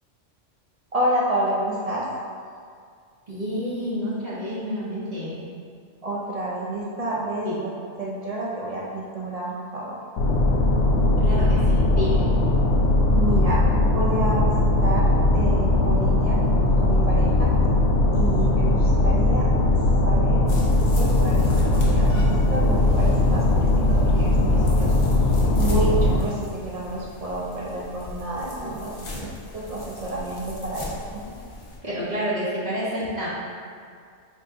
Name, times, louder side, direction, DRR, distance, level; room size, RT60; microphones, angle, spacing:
voice 1, 0.9-2.0 6.0-7.7 8.0-10.0 13.1-16.4 16.8-17.5 18.1-19.5 20.0-20.5 21.0-24.9 25.6-29.3 29.5-31.2, right 1 dB, 70° right, -5 dB, 0.3 m, -29 dB
voice 2, 3.3-5.4 7.4-7.6 11.2-12.2 31.8-33.3, equal, 40° right, -10 dB, 0.8 m, -29 dB
Ship atmosphere, 10.2-26.2, left 2 dB, 75° left, 0.9 m, -19 dB
sound 1, 20.5-31.8, left 1 dB, 35° left, 0.6 m, -38 dB
4.4 x 2.5 x 3.4 m, 2.2 s
omnidirectional pair, 1.3 m